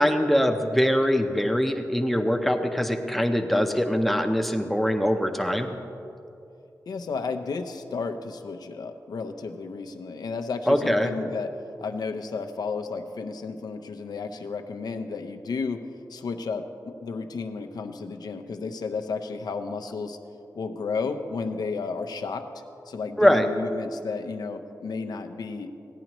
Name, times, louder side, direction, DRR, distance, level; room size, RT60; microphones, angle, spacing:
voice 1, 0.0-5.7 10.7-11.1 23.2-23.5, equal, ahead, 5 dB, 0.7 m, -22 dB
voice 2, 6.9-11.5 11.8-15.8 16.1-20.2 20.5-22.5 22.9-25.9, left 4 dB, 80° left, 6 dB, 0.7 m, -32 dB
16.0 x 10.0 x 3.0 m, 2.6 s
wide cardioid pair, 110°, 7 cm